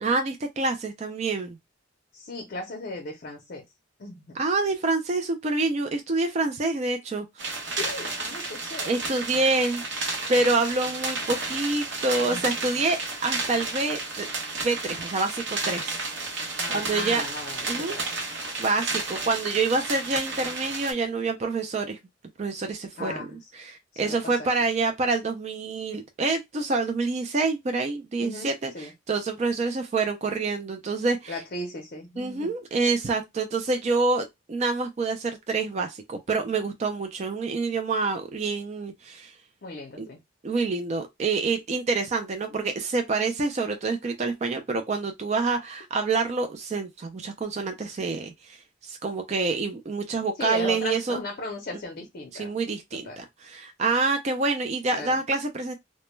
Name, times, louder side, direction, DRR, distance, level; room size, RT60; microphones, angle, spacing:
voice 1, 0.0-1.6 4.4-7.3 8.9-9.8 10.3-14.3 14.6-16.0 16.4-17.2 17.7-18.0 18.6-22.0 22.4-31.3 32.2-39.3 40.0-40.1 40.4-48.6 48.8-51.2 52.3-55.7, right 3 dB, 35° right, 0.4 m, -27 dB
voice 2, 2.1-3.6 4.0-4.4 7.8-8.9 12.3-12.4 12.8-12.9 16.6-18.2 23.0-23.4 24.0-24.5 28.2-28.9 31.3-32.5 39.6-40.2 50.4-52.5 53.0-53.2 54.9-55.2, left 2 dB, 50° left, 0.5 m, -36 dB
sound 1, 7.4-20.9, right 3 dB, 70° right, 0.8 m, -32 dB
2.1 x 2.1 x 3.0 m
head